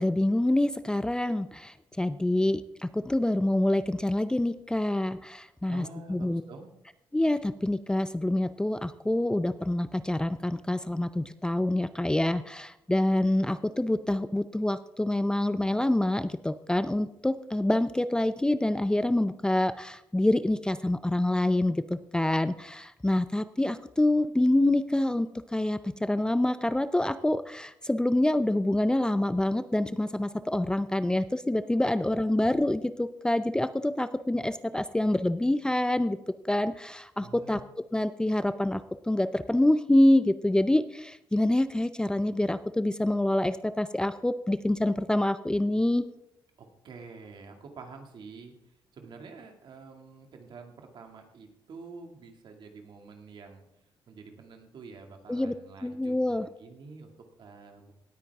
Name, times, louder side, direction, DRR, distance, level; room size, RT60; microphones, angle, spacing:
voice 1, 0.0-6.4 7.1-36.2 36.5-37.6 37.9-38.8 39.1-46.1 55.3-55.5 55.8-56.5, left 1 dB, 10° left, 12 dB, 0.5 m, -26 dB
voice 2, 5.7-6.7 37.2-37.7 46.6-53.6 54.1-57.9, right 4 dB, 60° right, 3 dB, 2.2 m, -47 dB
18.0 x 8.9 x 3.5 m, 0.81 s
cardioid pair, 85°, 9 cm